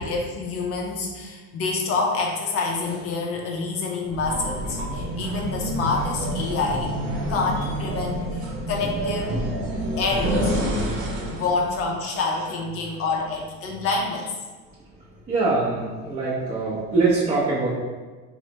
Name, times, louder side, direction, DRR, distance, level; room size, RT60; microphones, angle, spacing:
voice 1, 0.0-6.9 7.3-9.4 10.0-10.6 11.3-14.3, left 3 dB, 45° left, 0 dB, 0.4 m, -27 dB
sound 1, 4.1-11.6, right 1 dB, 85° right, 0.7 m, -28 dB
voice 2, 9.3-10.4 10.7-11.7 12.3-12.5 12.8-13.2 14.7-14.9 15.3-17.7, right 3 dB, 25° right, -8 dB, 0.6 m, -26 dB
3.2 x 2.0 x 2.8 m, 1.4 s
cardioid pair, 140°, 32 cm